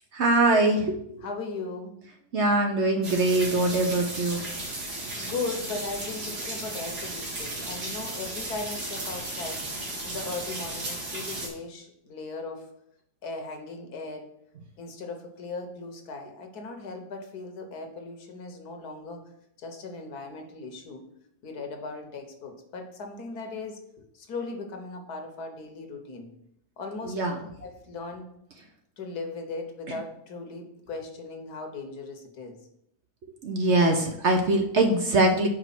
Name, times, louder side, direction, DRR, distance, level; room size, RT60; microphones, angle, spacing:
voice 1, 0.1-1.0 2.3-4.5 27.0-27.4 29.9-30.0 33.4-35.5, right 2 dB, 55° right, 3 dB, 1.0 m, -23 dB
voice 2, 1.2-1.9 5.2-9.6 10.0-12.7 13.2-14.3 14.8-19.3 19.6-21.0 21.4-23.8 24.1-26.3 26.8-28.2 29.0-32.6, left 3 dB, 75° left, 4 dB, 1.6 m, -38 dB
sound 1, 3.0-11.5, right 2 dB, 85° right, 2.4 m, -35 dB
5.2 x 4.6 x 5.8 m, 0.74 s
omnidirectional pair, 1.7 m